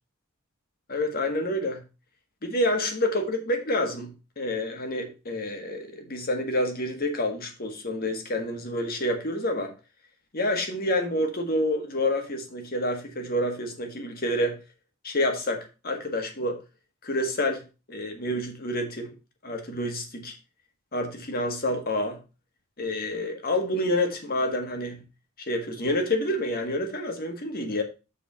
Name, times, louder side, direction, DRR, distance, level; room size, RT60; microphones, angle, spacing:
voice 1, 0.9-1.8 2.4-9.7 10.3-14.6 15.0-16.6 17.0-17.6 17.9-19.1 19.4-20.3 20.9-22.2 22.8-25.0 25.4-27.8, left 1 dB, 45° left, 5 dB, 1.6 m, -28 dB
7.0 x 4.6 x 5.6 m, 0.30 s
head